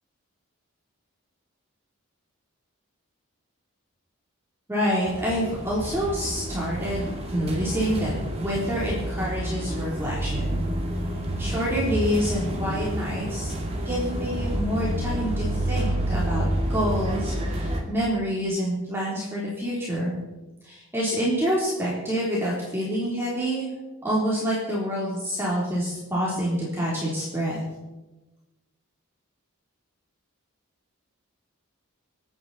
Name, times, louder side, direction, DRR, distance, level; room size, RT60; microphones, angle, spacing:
voice 1, 4.7-8.1 8.4-10.6 11.4-13.5 13.8-20.2 20.6-23.7 24.0-27.6, equal, 10° right, -6 dB, 3.5 m, -27 dB
sound 1, 5.1-17.8, right 1 dB, 25° right, 2.2 m, -29 dB
27.5 x 9.3 x 4.2 m, 1.1 s
head